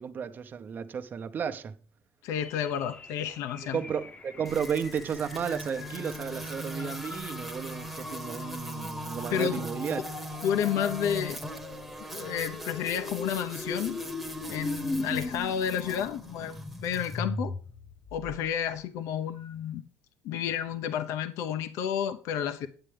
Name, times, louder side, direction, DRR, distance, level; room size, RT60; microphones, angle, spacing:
voice 1, 0.0-1.7 3.6-10.0, right 7 dB, 40° right, 0.7 m, -33 dB
voice 2, 2.2-3.8 9.3-9.6 10.4-11.4 12.1-14.0 14.5-17.5 18.1-19.8 20.2-22.7, left 9 dB, 75° left, 0.8 m, -31 dB
sound 1, 2.4-18.7, left 3 dB, 25° left, 0.8 m, -40 dB
sound 2, 4.4-17.2, right 1 dB, 5° right, 1.0 m, -40 dB
8.9 x 8.8 x 3.3 m
cardioid pair, 125°, 5 cm